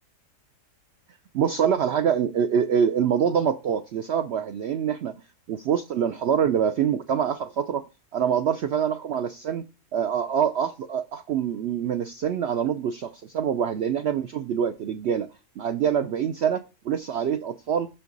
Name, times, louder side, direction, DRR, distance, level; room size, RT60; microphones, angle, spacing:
voice 1, 1.3-5.1 5.5-7.8 8.1-9.6 9.9-15.3 15.6-17.9, right 8 dB, 90° right, 0.5 m, -25 dB
5.9 x 5.9 x 3.9 m
omnidirectional pair, 1.7 m